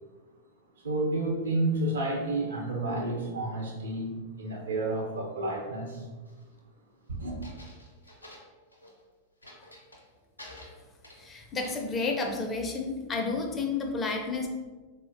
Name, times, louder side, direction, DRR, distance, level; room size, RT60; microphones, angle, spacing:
voice 1, 0.8-4.1 4.4-6.0 7.1-7.4, right 2 dB, 70° right, -1 dB, 0.6 m, -30 dB
sound 1, 6.3-6.6 7.4-9.0 9.4-10.1 10.4-12.3, left 1 dB, 85° left, 0.5 m, -50 dB
voice 2, 11.2-14.5, left 3 dB, 20° left, 2 dB, 0.4 m, -31 dB
3.6 x 2.0 x 2.5 m, 1.3 s
figure-of-eight pair, 90°, 0 cm